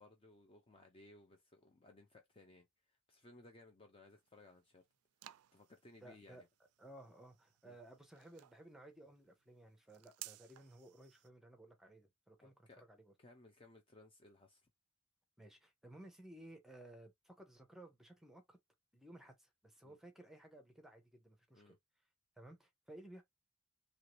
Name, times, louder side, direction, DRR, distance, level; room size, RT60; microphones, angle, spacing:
voice 1, 0.0-4.8 5.5-6.5 7.6-7.8 12.4-12.8 13.2-14.6 19.8-20.0 21.5-21.8, left 2 dB, 25° left, 0.5 m, -62 dB
sound 1, 4.1-11.3, right 16 dB, 80° right, 0.3 m, -58 dB
voice 2, 6.0-6.4 6.8-13.1 15.4-18.6 18.9-21.7 22.4-23.2, right 1 dB, ahead, 0.8 m, -57 dB
3.0 x 2.7 x 3.0 m
head